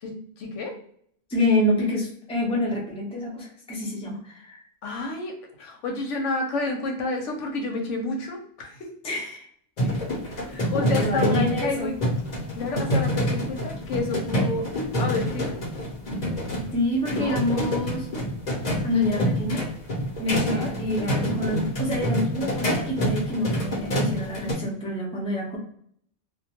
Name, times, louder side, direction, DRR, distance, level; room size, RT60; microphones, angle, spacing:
voice 1, 0.0-0.8 4.8-8.9 10.5-12.0 12.5-14.7 15.0-15.6 17.1-17.4 20.4-20.7, left 3 dB, 85° left, 3 dB, 1.0 m, -30 dB
voice 2, 1.3-4.6 9.0-9.5 9.8-9.9 10.6-11.9 16.7-18.1 18.8-19.6 20.2-25.6, left 1 dB, 5° left, -3 dB, 0.5 m, -27 dB
sound 1, 9.8-24.5, equal, 40° left, 0.8 m, -27 dB
2.3 x 2.2 x 2.8 m, 0.65 s
omnidirectional pair, 1.2 m